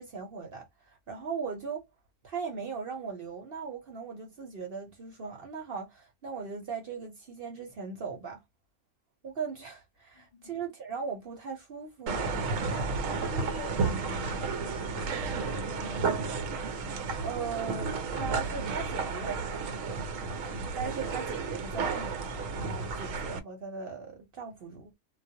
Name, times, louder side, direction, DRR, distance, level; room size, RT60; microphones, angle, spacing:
voice 1, 0.0-1.9 2.2-8.4 9.2-12.5 17.2-19.8 20.8-24.9, right 5 dB, 55° right, 0.7 m, -39 dB
voice 2, 10.1-10.5 12.7-12.9 13.2-16.1, left 4 dB, 50° left, 0.7 m, -45 dB
sound 1, 12.1-23.4, right 4 dB, 75° right, 1.0 m, -32 dB
2.3 x 2.0 x 2.7 m
omnidirectional pair, 1.4 m